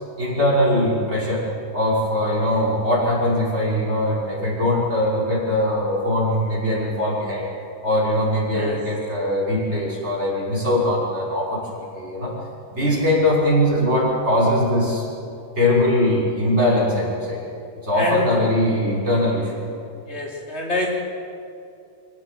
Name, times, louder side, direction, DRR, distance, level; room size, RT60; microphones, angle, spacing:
voice 1, 0.2-1.4 1.7-7.5 7.8-12.3 12.7-15.0 15.6-17.4 17.8-19.6, left 1 dB, 40° right, -6 dB, 6.3 m, -21 dB
voice 2, 17.9-18.4 20.1-21.0, left 2 dB, 40° left, -2 dB, 3.9 m, -26 dB
25.5 x 16.5 x 7.8 m, 2.5 s
omnidirectional pair, 1.7 m